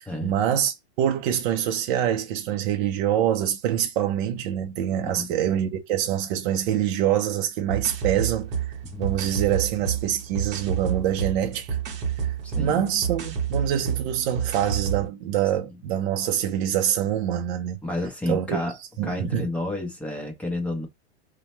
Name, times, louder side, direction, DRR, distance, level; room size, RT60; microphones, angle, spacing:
voice 1, 0.0-11.8 12.6-17.8 18.3-18.6 19.0-19.5, right 10 dB, 50° right, 0.5 m, -25 dB
sound 1, 7.7-15.1, right 8 dB, 30° right, 0.8 m, -29 dB
voice 2, 12.4-12.8 17.8-18.8 19.0-20.9, left 2 dB, 5° left, 0.7 m, -30 dB
2.7 x 2.1 x 3.1 m
hypercardioid pair, 135°, 34 cm